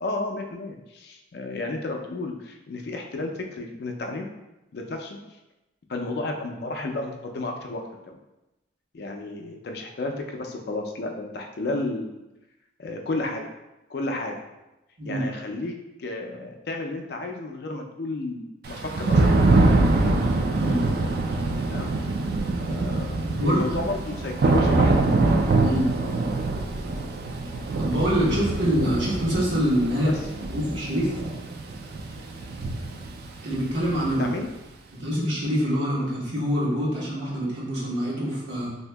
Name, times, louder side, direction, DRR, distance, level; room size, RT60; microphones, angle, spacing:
voice 1, 0.0-4.3 4.7-5.2 5.9-8.2 8.9-12.2 12.8-13.4 13.9-14.4 15.0-19.2 21.7-21.9 22.6-25.2 25.7-25.9 30.0-30.2 34.2-34.5, left 2 dB, 55° left, 3 dB, 0.4 m, -32 dB
Thunder / Rain, 18.6-34.4, right 2 dB, 55° right, 0.3 m, -24 dB
voice 2, 20.5-20.9 23.3-23.9 25.6-25.9 27.8-30.1 30.5-31.1 33.4-34.3 34.9-38.8, equal, 75° right, -6 dB, 1.2 m, -25 dB
2.7 x 2.7 x 3.3 m, 0.96 s
head